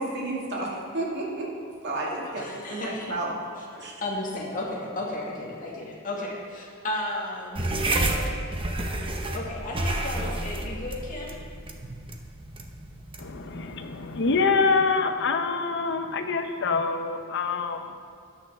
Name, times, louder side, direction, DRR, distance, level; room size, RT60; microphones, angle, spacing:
voice 1, 0.0-1.5 1.8-3.4 3.8-3.9, right 2 dB, 55° right, -3 dB, 2.1 m, -31 dB
voice 2, 2.2-3.2 3.6-3.7 4.0-7.8 9.3-11.3, left 2 dB, 40° left, -3 dB, 1.9 m, -34 dB
sound 1, 7.5-14.4, right 1 dB, 25° right, 0.7 m, -30 dB
voice 3, 13.2-18.0, left 4 dB, 55° left, 6 dB, 0.7 m, -25 dB
13.5 x 9.1 x 3.5 m, 2.2 s
head